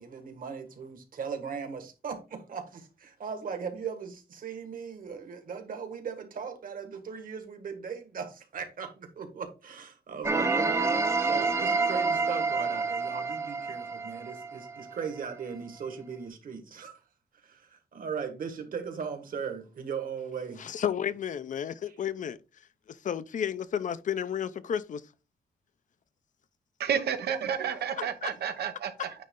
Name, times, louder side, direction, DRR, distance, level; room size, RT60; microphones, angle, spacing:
voice 1, 0.0-17.0 17.3-20.7, right 6 dB, 60° right, 1.6 m, -38 dB
sound 1, 10.2-15.0, right 4 dB, 15° right, 0.6 m, -28 dB
voice 2, 20.6-25.0 28.2-28.3 29.0-29.1, left 8 dB, 50° left, 0.5 m, -32 dB
voice 3, 26.8-29.1, right 8 dB, 85° right, 0.9 m, -31 dB
9.3 x 3.2 x 3.7 m
wide cardioid pair, 140°, 16 cm